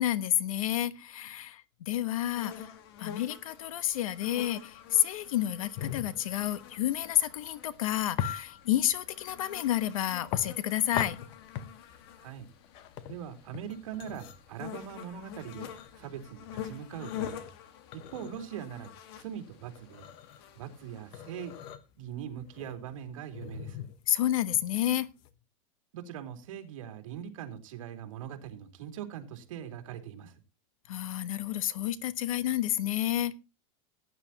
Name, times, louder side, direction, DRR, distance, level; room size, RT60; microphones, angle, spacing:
voice 1, 0.0-11.2 24.1-25.1 30.9-33.4, left 12 dB, 85° left, 1.2 m, -30 dB
sound 1, 2.3-21.7, left 10 dB, 45° left, 1.7 m, -47 dB
sound 2, 5.8-25.3, left 10 dB, 30° left, 0.8 m, -41 dB
voice 2, 12.2-12.5 13.1-15.7 15.9-17.5 17.9-18.9 19.2-20.1 20.5-21.6 22.0-23.9 25.9-30.4, right 9 dB, 75° right, 2.8 m, -41 dB
17.5 x 9.7 x 2.9 m
supercardioid pair, 180°, 17 cm